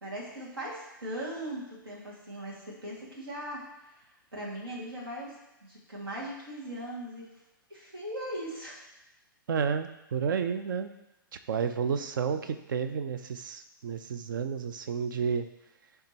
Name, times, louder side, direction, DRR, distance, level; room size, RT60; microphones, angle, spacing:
voice 1, 0.0-3.9 4.3-5.3 5.6-7.3 7.7-8.8, right 1 dB, 80° right, -5 dB, 2.1 m, -39 dB
voice 2, 9.5-10.9 11.5-15.5, right 6 dB, 60° right, 9 dB, 0.6 m, -31 dB
10.0 x 3.5 x 2.9 m, 0.89 s
figure-of-eight pair, 120°, 12 cm